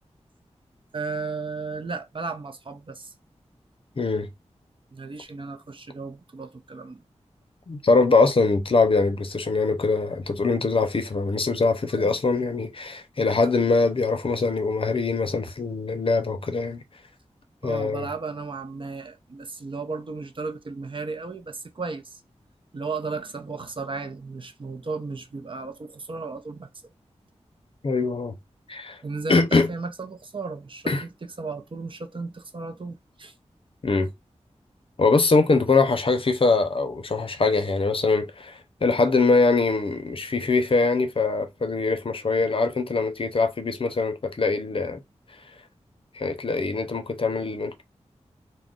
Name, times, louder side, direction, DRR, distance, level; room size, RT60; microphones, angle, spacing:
voice 1, 0.9-3.1 4.9-7.0 12.0-12.2 17.6-22.2 22.7-26.7 29.0-33.3, right 4 dB, 45° right, 0.6 m, -34 dB
voice 2, 4.0-4.3 7.7-16.8 17.6-18.1 27.8-28.3 28.7-29.0 29.3-29.7 30.9-31.0 33.8-34.1 35.0-45.0 46.1-47.8, left 3 dB, 50° left, 0.6 m, -23 dB
2.4 x 2.1 x 3.7 m
wide cardioid pair, 60°, 12 cm